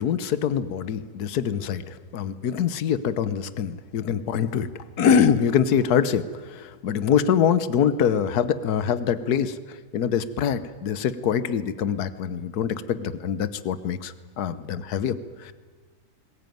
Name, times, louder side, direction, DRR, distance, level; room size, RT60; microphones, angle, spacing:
voice 1, 0.0-4.7 5.0-15.5, left 8 dB, 75° left, 14 dB, 1.5 m, -24 dB
22.0 x 19.5 x 9.3 m, 1.4 s
omnidirectional pair, 1.7 m